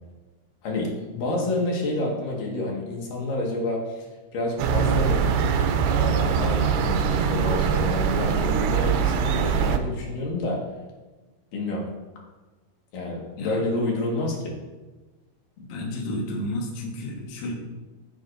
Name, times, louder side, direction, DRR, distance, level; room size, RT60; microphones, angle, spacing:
voice 1, 0.6-4.1 4.3-5.2 5.8-10.6 11.5-11.8 12.9-14.5, left 2 dB, 75° left, -2 dB, 3.3 m, -29 dB
sound 1, 4.6-9.8, right 6 dB, 90° right, 2.4 m, -22 dB
voice 2, 15.6-17.5, left 1 dB, 55° left, -1 dB, 1.9 m, -31 dB
15.0 x 6.5 x 2.6 m, 1.2 s
omnidirectional pair, 4.0 m